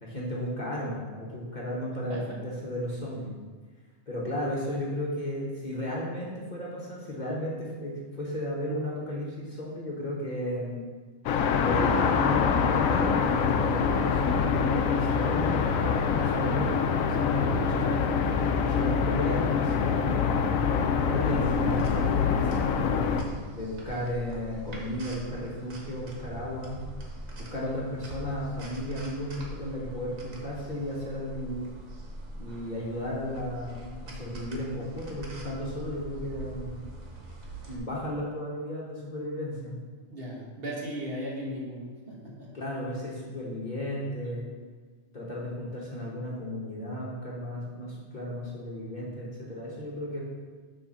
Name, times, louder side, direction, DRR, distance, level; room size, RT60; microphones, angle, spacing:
voice 1, 0.0-3.3 4.1-10.9 11.6-17.9 18.6-20.3 20.9-23.1 23.5-26.8 27.4-31.7 32.4-36.8 37.7-39.8 42.5-44.5 45.1-50.2, left 1 dB, 35° left, -5 dB, 1.2 m, -34 dB
sound 1, 11.3-23.2, left 6 dB, 80° left, 1.0 m, -25 dB
sound 2, 21.2-37.8, right 1 dB, 80° right, 1.7 m, -42 dB
voice 2, 40.1-42.5 44.2-44.4, equal, 45° right, -4 dB, 1.5 m, -37 dB
6.9 x 3.5 x 6.2 m, 1.5 s
omnidirectional pair, 1.4 m